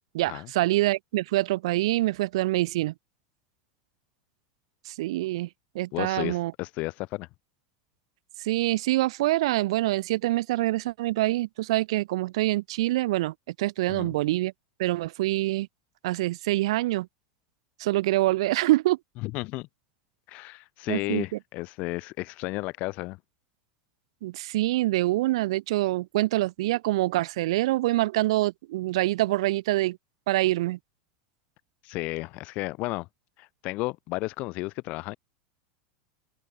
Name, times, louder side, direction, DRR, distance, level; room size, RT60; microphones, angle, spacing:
voice 1, 0.1-2.9 4.9-5.5 5.7-6.5 8.4-14.5 14.8-15.7 16.0-17.1 17.8-19.0 20.9-21.4 24.2-30.0 30.3-30.8, right 17 dB, 75° right, 2.0 m, -25 dB
voice 2, 5.9-7.3 13.9-14.1 19.2-19.7 20.3-23.2 31.8-33.1 33.4-35.2, left 22 dB, 55° left, 7.8 m, -33 dB
open air
supercardioid pair, 115°, 3 cm